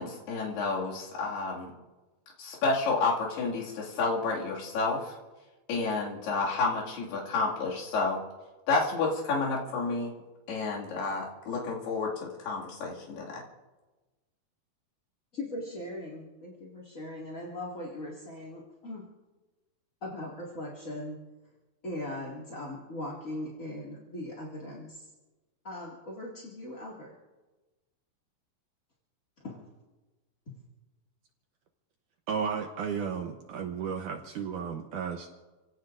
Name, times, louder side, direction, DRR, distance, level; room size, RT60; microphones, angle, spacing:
voice 1, 0.0-1.7 2.4-5.2 5.7-8.2 8.7-10.1 10.5-13.4, left 3 dB, 90° left, -4 dB, 4.4 m, -30 dB
voice 2, 15.3-19.0 20.0-21.2 21.8-25.1 25.6-27.1 29.4-29.7 30.5-30.6, left 1 dB, 25° left, -5 dB, 1.9 m, -39 dB
voice 3, 32.3-35.3, right 6 dB, 70° right, 3 dB, 2.1 m, -33 dB
29.5 x 17.0 x 2.6 m, 1.2 s
omnidirectional pair, 4.5 m